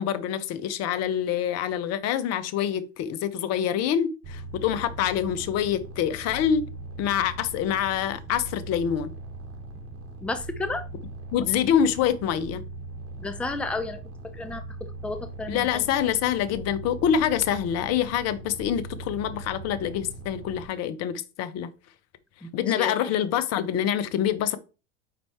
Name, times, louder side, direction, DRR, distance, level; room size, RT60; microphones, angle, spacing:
voice 1, 0.0-6.6 7.0-9.1 11.3-12.6 15.5-21.7 22.5-24.6, left 9 dB, 45° left, 0.8 m, -26 dB
sound 1, 4.2-20.7, right 2 dB, 40° right, 1.7 m, -40 dB
voice 2, 10.2-10.8 13.2-14.0 14.3-15.7 22.4-22.5 22.8-23.0, left 3 dB, 5° left, 0.6 m, -32 dB
5.1 x 4.5 x 4.2 m
supercardioid pair, 105°, 36 cm